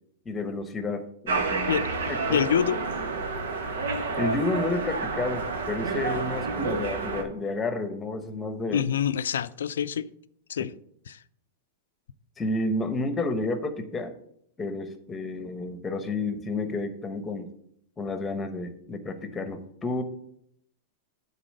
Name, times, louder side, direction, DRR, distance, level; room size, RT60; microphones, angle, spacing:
voice 1, 0.2-2.4 4.1-8.8 12.4-14.1 14.6-17.5 18.0-20.0, left 2 dB, 15° left, 1.0 m, -31 dB
sound 1, 1.3-7.2, right 3 dB, 85° right, 1.3 m, -29 dB
voice 2, 2.3-2.8 8.7-10.1 10.5-10.7 11.1-11.2, left 9 dB, 90° left, 0.4 m, -26 dB
9.1 x 4.0 x 6.5 m
hypercardioid pair, 125°, 0 cm